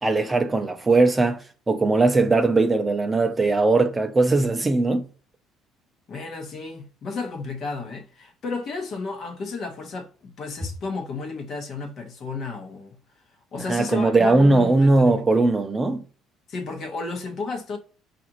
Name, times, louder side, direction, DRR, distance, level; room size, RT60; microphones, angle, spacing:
voice 1, 0.0-5.1 13.7-16.0, right 3 dB, 15° right, 0.4 m, -19 dB
voice 2, 6.1-13.0 13.5-15.5 16.5-17.8, left 4 dB, 40° left, 0.9 m, -33 dB
5.0 x 2.5 x 2.9 m
cardioid pair, 165°, 0 cm